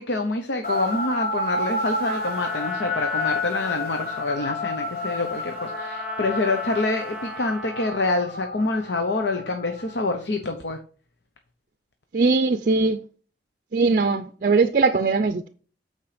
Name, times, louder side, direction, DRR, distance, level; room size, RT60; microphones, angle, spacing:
voice 1, 0.0-10.8, left 2 dB, 70° left, 0.9 m, -26 dB
sound 1, 0.6-10.1, left 2 dB, 55° left, 1.2 m, -30 dB
Trumpet, 2.1-8.3, right 1 dB, 5° right, 0.8 m, -39 dB
voice 2, 12.1-13.0 13.7-15.5, right 4 dB, 50° right, 0.5 m, -20 dB
8.6 x 4.6 x 5.0 m
head